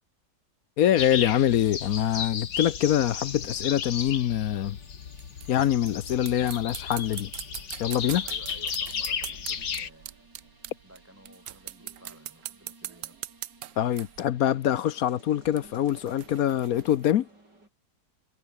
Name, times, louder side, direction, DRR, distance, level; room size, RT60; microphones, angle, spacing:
voice 1, 0.8-4.8 5.5-7.3 7.8-8.2 13.8-17.3, left 11 dB, 65° left, 1.1 m, -24 dB
sound 1, 1.0-9.9, left 7 dB, 80° left, 2.4 m, -34 dB
sound 2, 3.1-17.7, right 2 dB, 80° right, 8.7 m, -56 dB
sound 3, 5.0-11.0 11.3-14.2 15.5-17.1, right 13 dB, 65° right, 1.1 m, -41 dB
voice 2, 8.2-10.3 10.8-13.2, equal, 5° right, 6.7 m, -54 dB
omnidirectional pair, 1.8 m